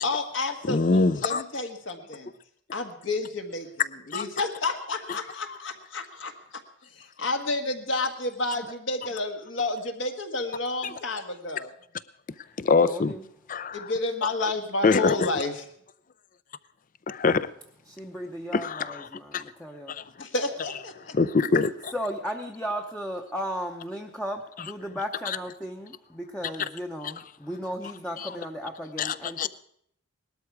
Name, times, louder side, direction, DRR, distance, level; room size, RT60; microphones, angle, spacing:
voice 1, 0.0-2.3 2.7-3.7 4.1-6.3 6.9-11.7 13.7-15.5 20.2-21.1, left 2 dB, 60° left, 5 dB, 1.5 m, -30 dB
voice 2, 0.6-1.4 4.1-4.3 5.1-5.2 10.8-10.9 12.6-13.1 13.5-13.9 14.2-14.5 14.8-15.3 17.1-17.5 18.5-19.1 19.3-19.5 19.9-20.3 21.1-21.9 25.3-25.4 28.2-28.3 29.0-29.5, left 4 dB, 40° left, 16 dB, 0.5 m, -24 dB
voice 3, 12.8-13.3 17.9-20.0 21.9-29.5, equal, 5° left, 2 dB, 0.8 m, -35 dB
19.0 x 12.5 x 4.8 m, 0.69 s
head